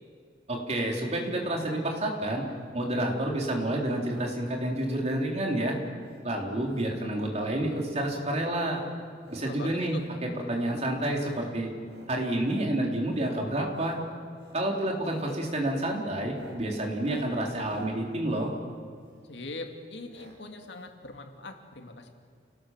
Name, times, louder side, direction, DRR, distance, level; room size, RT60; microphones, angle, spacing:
voice 1, 0.5-2.4 2.7-5.8 6.2-8.8 9.3-11.7 12.1-14.0 14.5-18.5, right 1 dB, 40° right, 0 dB, 3.7 m, -29 dB
sound 1, 4.0-4.3 4.6-5.0 5.3-5.6 6.0-6.3 6.6-6.9 7.2-7.6 7.9-8.2 8.6-9.5 9.9-10.1 10.5-10.8 11.1-11.5 11.8-12.1 12.4-12.7 13.1-13.4 13.7-14.0 14.3-14.6 15.0-15.3 15.6-19.3 20.1-20.4 20.6-20.7 20.9-21.0, right 1 dB, 75° right, 5.5 m, -50 dB
voice 2, 9.4-10.0 19.3-22.1, left 2 dB, 75° left, 4 dB, 2.4 m, -41 dB
29.5 x 18.5 x 7.5 m, 2.1 s
head